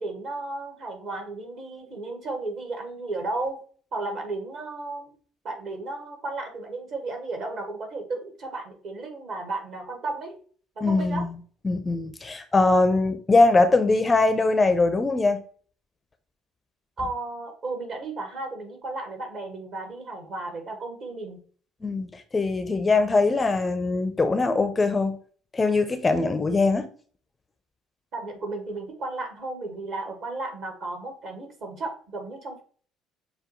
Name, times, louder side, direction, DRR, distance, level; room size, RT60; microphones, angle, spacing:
voice 1, 0.0-3.6 3.9-5.1 5.4-10.4 10.7-11.3 17.0-21.4 28.1-32.6, right 2 dB, 50° right, 1.4 m, -34 dB
voice 2, 10.8-11.3 11.6-15.4 21.8-25.2 25.5-26.9, left 3 dB, 20° left, 0.5 m, -22 dB
6.6 x 2.2 x 2.9 m
figure-of-eight pair, 55°, 0 cm